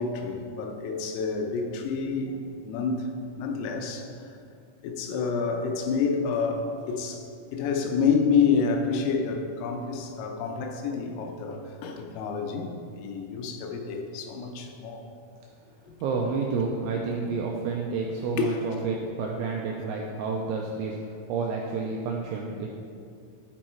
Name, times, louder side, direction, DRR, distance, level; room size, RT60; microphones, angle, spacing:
voice 1, 0.0-4.4 4.8-15.1 15.9-16.0 18.3-18.6, left 5 dB, 85° left, 3 dB, 3.4 m, -28 dB
voice 2, 16.0-22.7, right 4 dB, 90° right, 0 dB, 2.7 m, -30 dB
11.0 x 4.5 x 4.4 m, 2.4 s
omnidirectional pair, 6.0 m